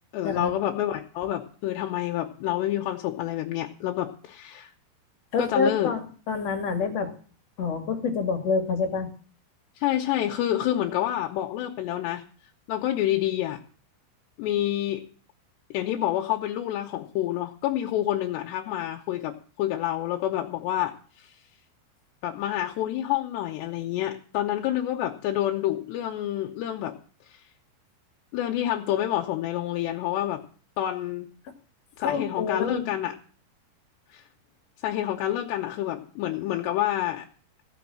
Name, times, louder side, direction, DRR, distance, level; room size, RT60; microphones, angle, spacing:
voice 1, 0.1-4.7 5.4-5.9 9.8-12.2 12.7-13.6 14.4-15.0 15.7-21.3 22.2-26.9 27.3-27.4 28.3-30.4 30.8-31.3 32.0-33.1 34.1-34.2 34.8-37.3, left 13 dB, 80° left, 2 dB, 3.0 m, -28 dB
voice 2, 5.3-7.1 7.6-9.1 32.0-32.9, left 4 dB, 45° left, 4 dB, 2.3 m, -27 dB
15.5 x 6.2 x 8.6 m, 0.41 s
omnidirectional pair, 5.1 m